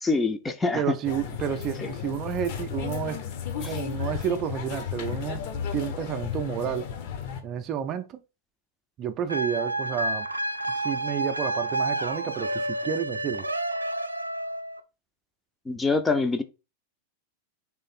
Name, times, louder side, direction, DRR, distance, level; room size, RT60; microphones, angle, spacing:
voice 1, 0.0-0.9 1.8-1.9 3.6-3.7 15.7-16.4, left 3 dB, 10° left, 0.6 m, -25 dB
voice 2, 0.8-3.2 3.6-5.4 5.7-6.9 7.4-8.2 9.0-10.3 10.7-13.4, right 9 dB, 35° right, 0.5 m, -30 dB
sound 1, 1.0-7.4, left 8 dB, 50° left, 1.0 m, -34 dB
sound 2, 9.3-14.8, right 1 dB, 85° right, 0.4 m, -30 dB
3.8 x 3.2 x 4.3 m
figure-of-eight pair, 90°, 0 cm